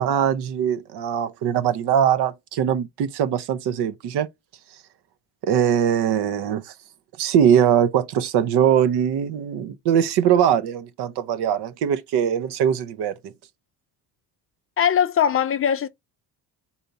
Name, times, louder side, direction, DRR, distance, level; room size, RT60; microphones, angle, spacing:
voice 1, 0.0-4.3 5.4-6.7 7.2-13.3, right 9 dB, 75° right, 0.7 m, -21 dB
voice 2, 14.8-15.9, left 8 dB, 35° left, 0.4 m, -20 dB
4.2 x 2.7 x 4.5 m
cardioid pair, 115°, 40 cm